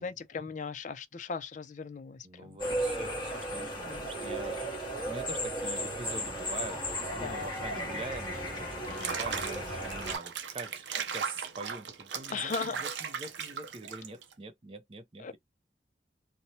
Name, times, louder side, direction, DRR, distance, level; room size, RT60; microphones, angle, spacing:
voice 1, 0.0-2.6 3.9-4.1 7.2-7.5 7.7-8.0 8.9-9.2 12.3-12.8 15.2-15.4, left 5 dB, 45° left, 0.4 m, -38 dB
voice 2, 2.2-12.4 12.6-15.4, right 3 dB, 30° right, 0.5 m, -45 dB
sound 1, 2.6-10.2, equal, 25° left, 1.3 m, -35 dB
Water / Bathtub (filling or washing), 8.8-14.3, right 6 dB, 85° right, 0.6 m, -37 dB
3.0 x 2.1 x 2.7 m
head